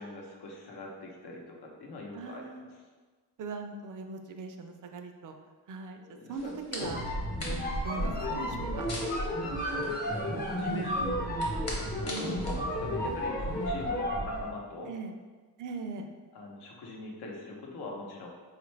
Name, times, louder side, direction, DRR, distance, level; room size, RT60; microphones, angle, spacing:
voice 1, 0.0-2.5 6.0-6.6 9.6-14.9 16.3-18.3, left 2 dB, 70° left, -1 dB, 0.8 m, -42 dB
voice 2, 2.1-2.7 3.4-5.3 5.7-6.0 6.3-7.0 7.5-8.9 10.6-10.9 14.9-15.1 15.6-16.1, right 4 dB, 50° right, 5 dB, 0.5 m, -40 dB
sound 1, 6.4-13.7, left 1 dB, 40° left, 1.1 m, -42 dB
sound 2, 6.7-14.5, equal, 25° left, 0.6 m, -32 dB
4.3 x 2.5 x 3.1 m, 1.4 s
cardioid pair, 105°, 40 cm